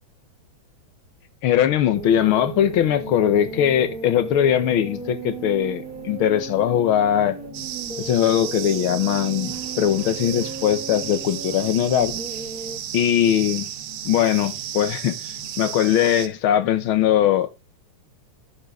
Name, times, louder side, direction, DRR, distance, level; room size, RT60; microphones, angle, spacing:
voice 1, 1.4-7.4 8.0-12.1 12.9-13.7 14.0-17.5, left 10 dB, 75° left, 1.2 m, -20 dB
sound 1, 1.5-16.2, right 1 dB, 55° left, 2.4 m, -44 dB
sound 2, 1.9-12.8, right 4 dB, 35° right, 1.8 m, -36 dB
sound 3, 7.5-16.3, right 11 dB, 75° right, 2.3 m, -34 dB
12.0 x 6.6 x 3.6 m
omnidirectional pair, 3.4 m